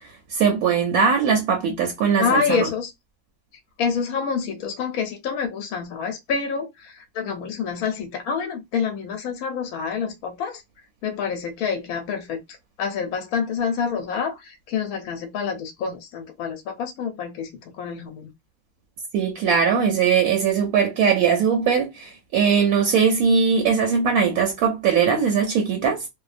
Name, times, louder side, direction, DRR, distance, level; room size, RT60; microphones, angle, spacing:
voice 1, 0.0-2.7 19.1-26.1, right 6 dB, 75° right, 1.1 m, -20 dB
voice 2, 2.2-2.9 3.8-10.6 11.0-18.3, left 6 dB, 70° left, 0.9 m, -27 dB
2.7 x 2.1 x 2.4 m
omnidirectional pair, 1.7 m